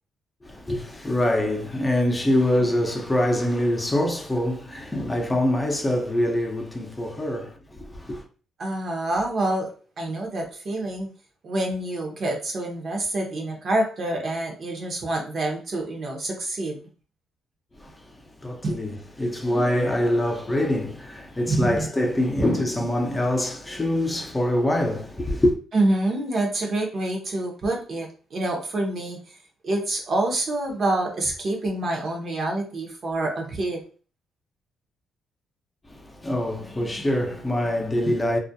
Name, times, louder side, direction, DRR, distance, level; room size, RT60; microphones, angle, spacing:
voice 1, 0.4-8.2 17.8-18.1 18.4-25.5 35.9-38.4, left 1 dB, 20° left, 0.6 m, -24 dB
voice 2, 8.6-11.1 11.4-16.8 18.6-18.8 21.5-21.9 22.4-22.5 25.7-29.2 29.6-33.8 38.0-38.1, right 2 dB, 50° right, 0.7 m, -27 dB
2.3 x 2.1 x 2.7 m
cardioid pair, 90°, 0 cm